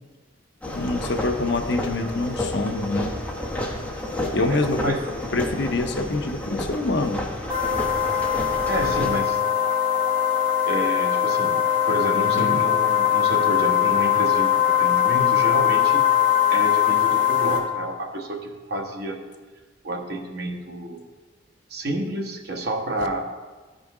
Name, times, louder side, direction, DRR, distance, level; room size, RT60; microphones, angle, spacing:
sound 1, 0.6-9.2, left 1 dB, 10° left, 1.0 m, -31 dB
voice 1, 0.8-3.1 4.3-5.0 5.3-7.2 12.3-12.6, left 2 dB, 60° left, 6 dB, 0.7 m, -25 dB
voice 2, 4.4-5.0 8.7-9.4 10.6-11.6 11.9-16.1 16.5-19.2 19.8-21.0 21.7-23.2, right 1 dB, 55° right, 1 dB, 1.1 m, -29 dB
sound 2, 7.5-17.6, left 10 dB, 30° right, 2.3 m, -21 dB
14.0 x 5.1 x 3.6 m, 1.3 s
head